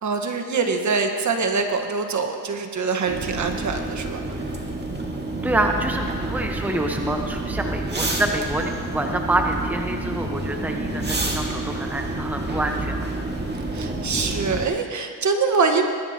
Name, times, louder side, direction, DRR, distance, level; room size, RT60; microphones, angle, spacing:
voice 1, 0.0-4.2 13.7-15.8, right 4 dB, 45° right, 5 dB, 1.5 m, -24 dB
sound 1, 3.1-14.7, right 2 dB, 25° right, 2.1 m, -28 dB
voice 2, 5.4-13.1, right 1 dB, 5° right, 3 dB, 1.1 m, -26 dB
20.0 x 12.0 x 3.0 m, 2.1 s
supercardioid pair, 75°, 41 cm